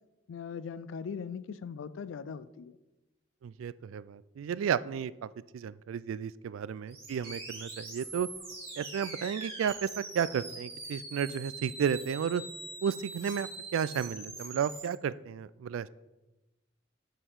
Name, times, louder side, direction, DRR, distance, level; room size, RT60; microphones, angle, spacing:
voice 1, 0.3-2.8, left 6 dB, 75° left, 17 dB, 0.4 m, -40 dB
voice 2, 3.4-8.3 8.8-12.4 12.8-15.9, right 7 dB, 85° right, 19 dB, 0.3 m, -33 dB
sound 1, 6.9-14.9, right 2 dB, 30° right, 2.4 m, -43 dB
5.7 x 5.4 x 6.3 m, 1.0 s
head